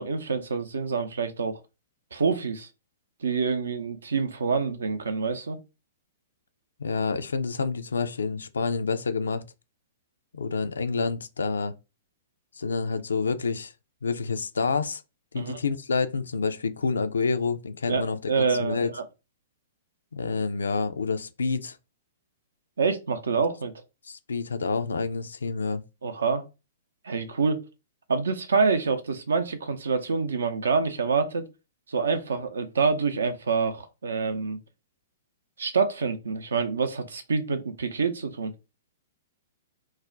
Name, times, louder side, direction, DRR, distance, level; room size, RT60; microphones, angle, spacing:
voice 1, 0.0-1.6 2.1-2.7 3.2-5.6 15.3-15.6 17.9-19.0 22.8-23.7 26.0-26.4 27.0-27.6 28.1-31.5 31.9-34.6 35.6-38.5, right 5 dB, 75° right, 0.5 m, -26 dB
voice 2, 6.8-9.4 10.3-11.7 12.6-13.7 14.0-15.0 15.3-18.9 20.1-21.8 24.1-25.8, left 4 dB, 75° left, 0.3 m, -28 dB
2.3 x 2.1 x 3.7 m
figure-of-eight pair, 110°, 0 cm